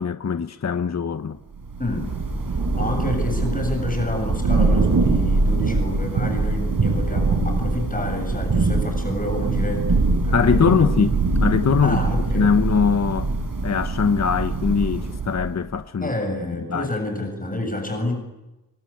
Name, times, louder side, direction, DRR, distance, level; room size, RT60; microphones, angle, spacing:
voice 1, 0.0-1.4 10.3-11.1 11.4-12.0 12.3-13.3 13.6-16.1 16.7-16.9, left 6 dB, 45° left, 1.1 m, -21 dB
Thunder / Rain, 1.5-15.6, right 3 dB, 65° right, 6.1 m, -23 dB
voice 2, 1.8-2.1 2.7-10.8 11.8-12.5 16.0-18.1, left 1 dB, 20° left, 7.5 m, -28 dB
28.5 x 24.0 x 8.6 m
wide cardioid pair, 90°, 37 cm